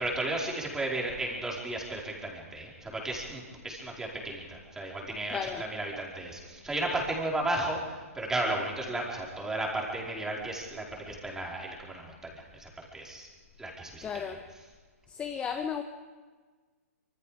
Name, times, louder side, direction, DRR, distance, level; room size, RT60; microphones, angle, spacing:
voice 1, 0.0-13.3 13.6-14.2, right 2 dB, 5° right, -2 dB, 4.7 m, -34 dB
voice 2, 5.3-5.7 14.0-14.4 15.1-15.8, left 7 dB, 15° left, 7 dB, 1.0 m, -34 dB
26.0 x 23.5 x 5.1 m, 1.4 s
hypercardioid pair, 145°, 8 cm